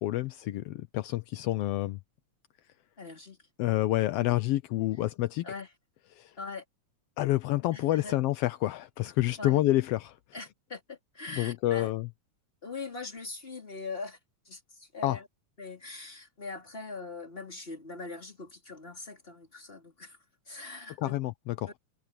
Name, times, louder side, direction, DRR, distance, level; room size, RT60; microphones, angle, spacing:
voice 1, 0.0-2.0 3.6-5.5 6.1-6.3 7.2-10.2 11.3-12.1 15.0-15.2 21.0-21.8, left 16 dB, 75° left, 1.4 m, -28 dB
voice 2, 3.0-3.4 5.4-5.7 6.4-6.6 7.7-8.1 9.4-9.6 10.3-11.9 12.6-14.2 14.5-15.3 15.6-20.2 20.5-21.1, left 3 dB, 20° left, 4.0 m, -41 dB
omnidirectional pair, 3.4 m